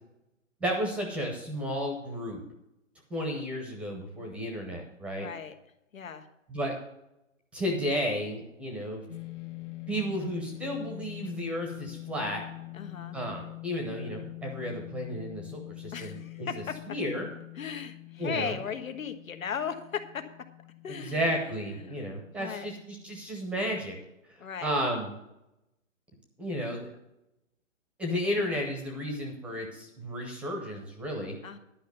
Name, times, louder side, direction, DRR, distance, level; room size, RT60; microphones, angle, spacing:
voice 1, 0.6-2.4 3.1-5.3 6.5-6.7 7.5-9.0 9.9-12.4 13.1-16.5 16.9-17.3 18.2-18.5 20.9-23.9 24.3-25.1 26.4-26.9 28.0-31.4, equal, 5° right, 2 dB, 0.8 m, -33 dB
voice 2, 5.2-5.5 5.9-6.3 12.7-13.2 15.9-16.8 17.6-20.2 20.8-21.2 21.8-22.0 22.4-22.7 24.4-24.8 31.4-31.6, left 7 dB, 85° left, 8 dB, 1.5 m, -36 dB
sound 1, 9.1-23.5, left 22 dB, 65° left, 1.5 m, -44 dB
11.0 x 5.6 x 6.8 m, 0.87 s
hypercardioid pair, 155°, 40 cm